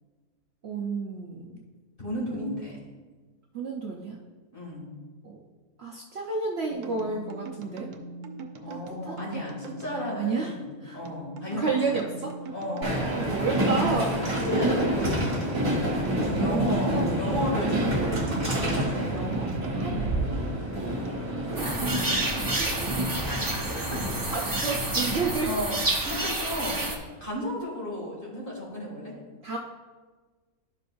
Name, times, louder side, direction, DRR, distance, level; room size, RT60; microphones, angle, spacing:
voice 1, 0.6-1.6 2.3-2.6 3.5-4.2 5.8-7.9 8.7-9.2 10.2-10.5 10.8-11.0 11.6-12.3 13.0-14.2 16.1-17.2 19.1-19.9 21.5-21.7 22.6-23.1 23.9-25.5 29.4-29.6, right 4 dB, 55° right, -1 dB, 0.8 m, -31 dB
voice 2, 2.0-2.8 4.5-4.9 8.6-12.0 12.5-13.2 14.3-15.4 16.4-18.4 19.9-20.3 21.6-22.2 23.2-23.4 23.7-24.0 24.4-24.8 25.4-25.8 26.0-26.9 27.2-29.1, left 1 dB, 35° left, -4 dB, 2.4 m, -34 dB
sound 1, 6.7-21.1, right 2 dB, 90° right, 1.2 m, -42 dB
Train, 12.8-25.3, right 1 dB, 40° right, 1.7 m, -28 dB
sound 2, 21.6-27.0, right 2 dB, 20° right, 0.5 m, -29 dB
12.5 x 5.3 x 2.5 m, 1.4 s
omnidirectional pair, 1.6 m